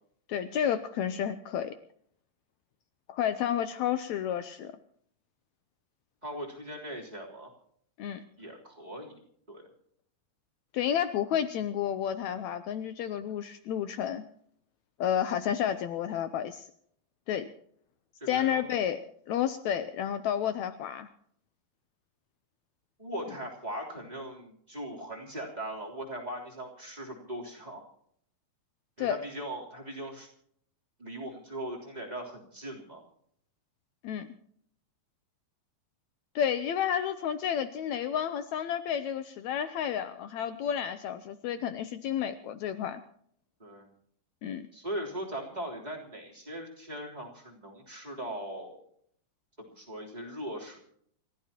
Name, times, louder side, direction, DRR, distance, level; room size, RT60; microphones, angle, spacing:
voice 1, 0.3-1.7 3.1-4.7 8.0-8.2 10.7-14.2 15.0-16.7 17.3-17.5 18.3-19.0 19.3-21.1 29.0-29.2 34.0-34.3 36.3-43.0 44.4-44.7, left 9 dB, 90° left, 11 dB, 1.6 m, -31 dB
voice 2, 6.2-7.5 8.4-9.2 9.5-9.7 18.2-18.6 23.0-27.8 29.0-30.3 31.0-33.0 43.6-43.9 44.7-48.8 49.6-50.8, right 1 dB, 10° right, 0 dB, 3.2 m, -39 dB
29.0 x 14.5 x 2.9 m, 0.65 s
omnidirectional pair, 4.3 m